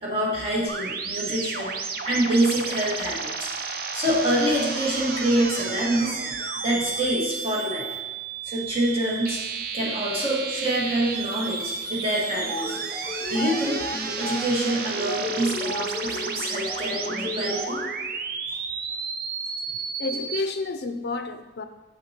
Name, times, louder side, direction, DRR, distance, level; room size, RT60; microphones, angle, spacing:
voice 1, 0.0-1.7 2.0-3.5 3.9-6.2 6.6-7.9 8.4-9.4 9.7-12.8 13.3-13.8 14.2-17.8, right 1 dB, 30° right, -5 dB, 1.5 m, -26 dB
sound 1, 0.7-20.4, right 5 dB, 55° right, 0.5 m, -32 dB
sound 2, 12.4-18.1, left 1 dB, 20° left, 1.0 m, -34 dB
voice 2, 19.7-21.6, left 3 dB, 60° left, 9 dB, 0.4 m, -31 dB
7.0 x 6.3 x 2.9 m, 1.2 s
head